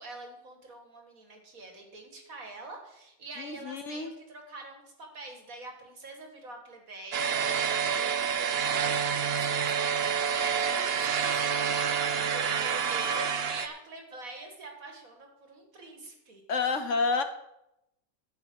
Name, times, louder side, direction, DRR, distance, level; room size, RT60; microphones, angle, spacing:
voice 1, 0.0-16.4, right 2 dB, 70° right, 3 dB, 2.2 m, -45 dB
voice 2, 3.4-4.1 16.5-17.2, left 4 dB, 60° left, 8 dB, 1.1 m, -29 dB
sound 1, 7.1-13.7, right 7 dB, 50° right, 0.8 m, -28 dB
12.0 x 5.6 x 7.7 m, 0.86 s
omnidirectional pair, 1.5 m